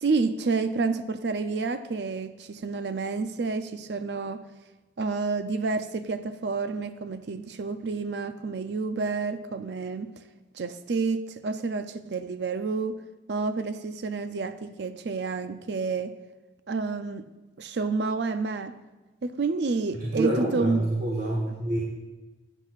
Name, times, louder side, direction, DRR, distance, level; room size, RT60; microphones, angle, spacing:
voice 1, 0.0-4.4 5.0-10.1 10.5-13.0 13.3-16.1 16.7-17.2 17.6-18.7 19.2-20.8, right 4 dB, 70° right, 10 dB, 0.5 m, -29 dB
voice 2, 19.9-21.8, right 1 dB, 45° right, -3 dB, 1.2 m, -27 dB
13.5 x 8.0 x 2.5 m, 1.2 s
head